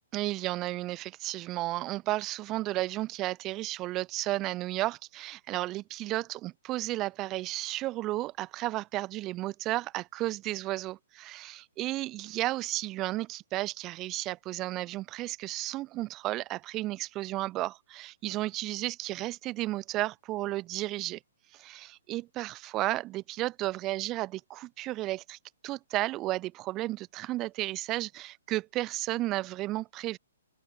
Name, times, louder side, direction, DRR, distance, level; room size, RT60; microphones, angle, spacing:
voice 1, 0.1-21.2 21.5-25.4 25.6-30.2, right 17 dB, 25° right, 2.0 m, -33 dB
open air
figure-of-eight pair, 120°, 0 cm